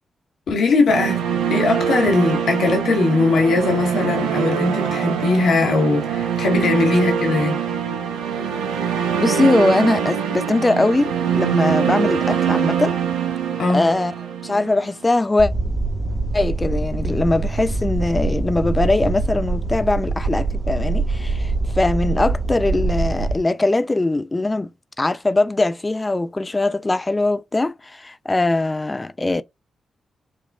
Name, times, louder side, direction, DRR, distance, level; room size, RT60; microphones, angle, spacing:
voice 1, 0.5-1.2 1.5-7.6 13.6-13.9, left 3 dB, 70° left, 1.2 m, -19 dB
sound 1, 0.9-15.0, right 8 dB, 90° right, 0.6 m, -23 dB
voice 2, 9.2-13.0 13.7-14.1 14.4-15.5 16.3-24.7 25.0-29.4, left 2 dB, 25° left, 0.4 m, -21 dB
sound 2, 15.4-23.4, right 3 dB, 30° right, 0.8 m, -24 dB
5.1 x 2.4 x 2.3 m
hypercardioid pair, 40°, 0 cm